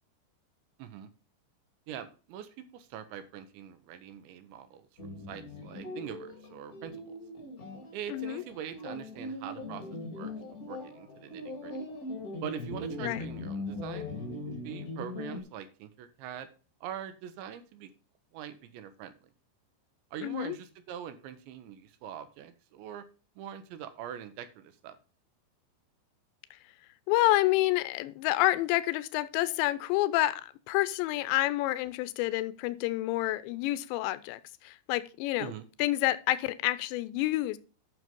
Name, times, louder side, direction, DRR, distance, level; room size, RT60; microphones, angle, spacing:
voice 1, 0.8-1.1 1.9-4.9 5.3-7.1 7.9-9.9 10.1-10.3 10.7-11.8 12.4-14.1 14.6-16.5 16.8-17.9 18.3-19.3 20.1-23.0 23.4-25.0 35.4-35.6, right 9 dB, 80° right, 3.2 m, -43 dB
sound 1, 5.0-15.4, left 2 dB, 40° left, 1.2 m, -40 dB
voice 2, 8.1-8.4 13.0-13.2 20.2-20.6 27.1-35.5 35.8-37.6, left 16 dB, 80° left, 2.8 m, -28 dB
9.2 x 6.3 x 5.3 m
omnidirectional pair, 5.3 m